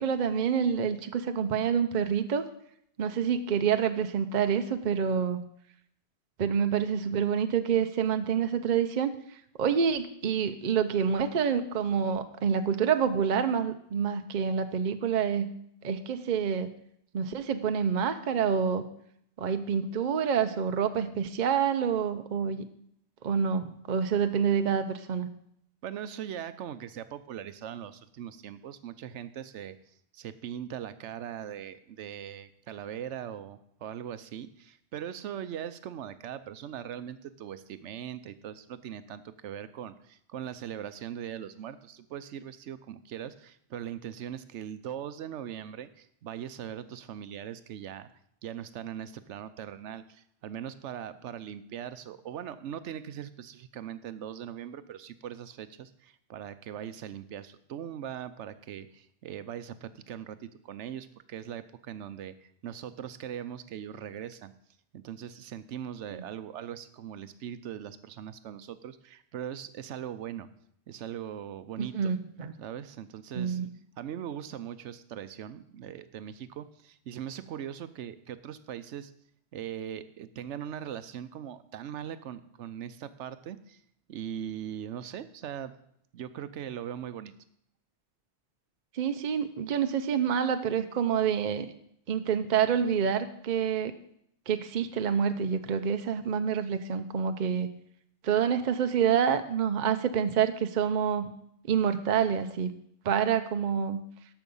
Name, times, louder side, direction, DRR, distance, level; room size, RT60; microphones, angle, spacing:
voice 1, 0.0-2.4 3.0-5.4 6.4-15.5 15.8-16.7 17.1-18.8 19.4-22.7 23.2-25.3 66.1-66.2 71.8-72.5 73.3-73.7 88.9-91.7 92.1-93.9 94.5-97.7 98.2-101.3 101.7-102.7 103.0-104.0, right 7 dB, 50° right, 8 dB, 0.7 m, -27 dB
voice 2, 25.8-29.8 30.1-48.1 48.4-64.5 64.9-70.5 70.9-72.1 72.6-73.6 74.0-79.1 79.5-83.8 84.1-85.8 86.1-87.3, right 9 dB, 90° right, 13 dB, 1.0 m, -40 dB
13.5 x 5.7 x 5.4 m, 0.71 s
omnidirectional pair, 1.2 m